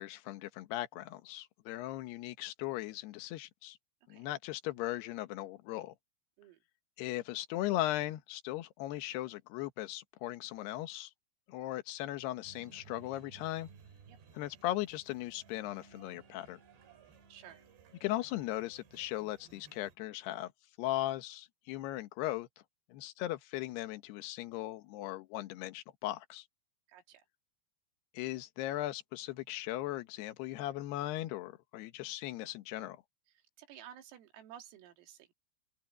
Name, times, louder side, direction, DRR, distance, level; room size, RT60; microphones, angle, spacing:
voice 1, 0.0-3.8 4.1-5.9 7.0-11.1 11.5-13.7 14.3-16.6 18.0-20.5 20.8-22.5 22.9-26.4 28.1-33.0, left 15 dB, 70° left, 2.7 m, -38 dB
sound 1, 12.4-20.0, right 6 dB, 60° right, 4.8 m, -59 dB
voice 2, 17.3-17.7 26.9-27.2 33.6-35.3, right 10 dB, 90° right, 5.2 m, -53 dB
open air
omnidirectional pair, 5.8 m